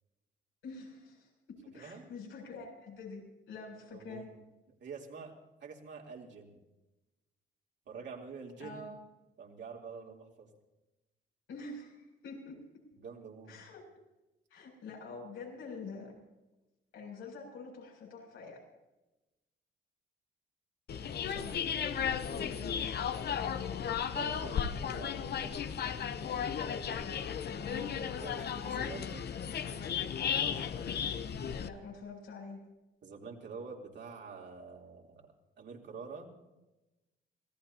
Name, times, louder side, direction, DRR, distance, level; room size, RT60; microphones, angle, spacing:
voice 1, 0.6-4.3 8.6-9.0 11.5-12.6 13.5-13.8 14.5-16.1 16.9-18.6 21.4-22.8 27.5-27.9 31.6-32.6, left 4 dB, 85° left, -1 dB, 7.4 m, -46 dB
voice 2, 3.9-4.2 4.8-5.3 5.6-6.5 7.9-8.8 9.4-10.5 12.9-13.6 21.3-21.5 24.0-25.7 28.2-29.3 33.0-35.3 35.6-36.3, right 5 dB, 65° right, -1 dB, 3.5 m, -47 dB
sound 1, 20.9-31.7, left 7 dB, 55° left, 1.0 m, -35 dB
26.0 x 17.0 x 2.9 m, 1.0 s
cardioid pair, 90°, 20 cm